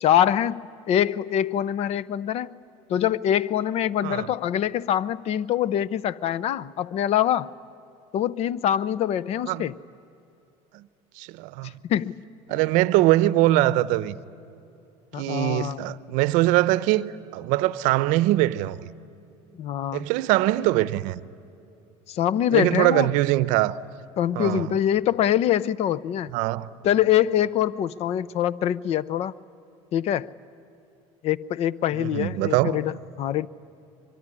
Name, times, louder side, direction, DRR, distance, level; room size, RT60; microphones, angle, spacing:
voice 1, 0.0-2.5 2.9-7.5 8.1-9.7 11.6-12.2 12.5-12.6 15.1-15.8 19.6-20.1 22.1-23.1 24.2-26.3 26.8-29.3 29.9-30.3 31.2-33.5, left 10 dB, 55° left, 0.6 m, -24 dB
voice 2, 11.2-11.7 12.5-14.2 15.2-18.9 19.9-21.2 22.5-23.8 24.4-24.8 26.3-26.7 31.9-32.8, right 16 dB, 75° right, 0.7 m, -22 dB
24.0 x 23.0 x 9.8 m
cardioid pair, 120°, 13 cm